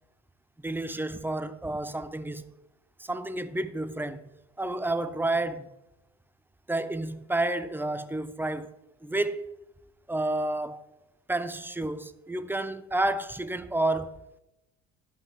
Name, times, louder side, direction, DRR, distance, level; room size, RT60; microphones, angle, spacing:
voice 1, 0.6-2.4 3.0-4.2 4.6-5.7 6.7-8.7 9.0-9.5 10.1-10.8 11.3-14.2, right 2 dB, 5° right, 0.5 m, -30 dB
11.5 x 5.4 x 3.7 m
hypercardioid pair, 70°, 35 cm